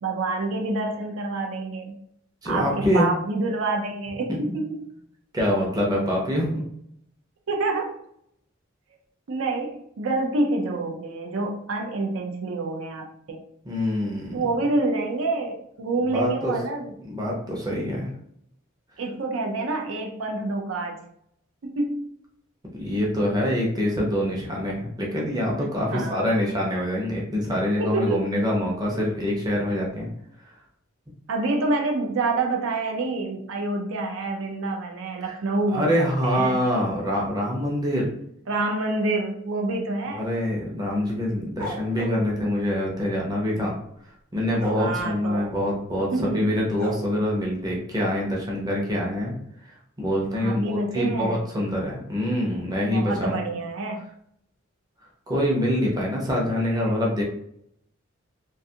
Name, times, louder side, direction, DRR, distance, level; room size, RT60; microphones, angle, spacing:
voice 1, 0.0-2.0 2.5-4.9 7.5-8.0 9.3-13.4 14.3-16.9 19.0-21.0 21.6-22.1 25.6-26.4 27.8-28.4 31.3-36.6 38.5-40.2 44.8-45.5 46.1-46.6 50.3-51.4 52.9-54.0 56.7-56.8, right 2 dB, 70° right, 2 dB, 0.4 m, -27 dB
voice 2, 2.4-3.1 4.3-4.4 5.3-6.7 13.6-14.4 16.1-16.5 17.1-18.1 22.7-30.1 35.2-35.3 35.7-38.1 40.1-43.7 44.3-49.3 50.0-53.4 55.3-57.2, equal, 20° right, -3 dB, 0.6 m, -25 dB
sound 1, 41.6-42.2 44.6-44.8 46.8-46.9, right 2 dB, 40° right, 1.0 m, -32 dB
2.4 x 2.3 x 2.7 m, 0.71 s
head